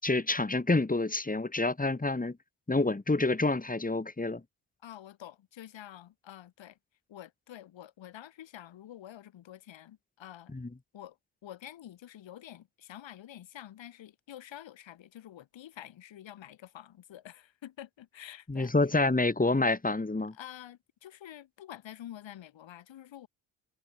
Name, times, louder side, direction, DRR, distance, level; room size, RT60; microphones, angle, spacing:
voice 1, 0.0-2.4 2.7-4.4 10.5-10.7 18.5-20.3, left 2 dB, 20° left, 4.3 m, -28 dB
voice 2, 4.8-6.8 7.1-10.5 10.9-11.2 11.4-18.7 20.3-23.3, left 12 dB, 75° left, 6.4 m, -48 dB
supercardioid pair, 60°, 46 cm